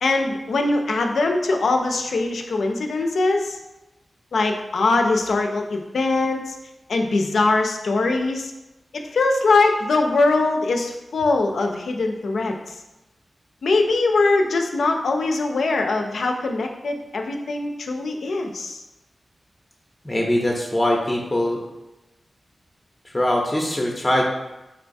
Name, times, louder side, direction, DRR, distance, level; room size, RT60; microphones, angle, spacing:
voice 1, 0.0-3.6 4.3-6.6 6.9-8.5 8.9-12.6 13.6-18.8, left 3 dB, 80° left, 3 dB, 0.3 m, -22 dB
voice 2, 20.0-21.6 23.1-24.2, left 1 dB, 25° left, -1 dB, 0.5 m, -22 dB
3.7 x 2.2 x 2.5 m, 1.0 s
cardioid pair, 40°, 0 cm